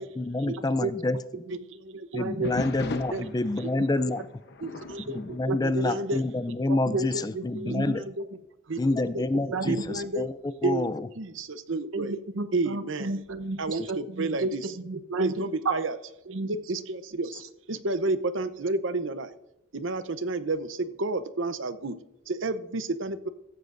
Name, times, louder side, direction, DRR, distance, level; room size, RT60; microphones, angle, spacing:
voice 1, 0.2-1.4 2.1-4.3 5.1-8.0 8.8-11.1, left 2 dB, 20° left, 14 dB, 0.4 m, -28 dB
voice 2, 1.5-2.1 3.1-3.3 3.6-3.7 4.1-4.2 4.6-5.2 5.6-6.2 7.1-7.3 7.7-8.3 8.7-9.3 9.7-10.3 10.6-12.2 12.5-13.2 13.6-14.8 15.2-16.0 16.3-17.4 17.7-19.3 19.7-22.0 22.3-23.3, right 2 dB, 60° right, 11 dB, 0.8 m, -31 dB
voice 3, 2.1-2.5 5.4-5.8 6.7-7.0 7.3-7.9 9.5-9.8 11.9-15.7 16.3-16.5, right 3 dB, 80° right, 9 dB, 1.1 m, -32 dB
sound 1, 2.4-6.6 6.9-7.3 7.9-8.0 8.7-11.4 13.3-13.8, left 2 dB, 55° left, 0.9 m, -41 dB
15.5 x 14.0 x 2.6 m, 0.91 s
head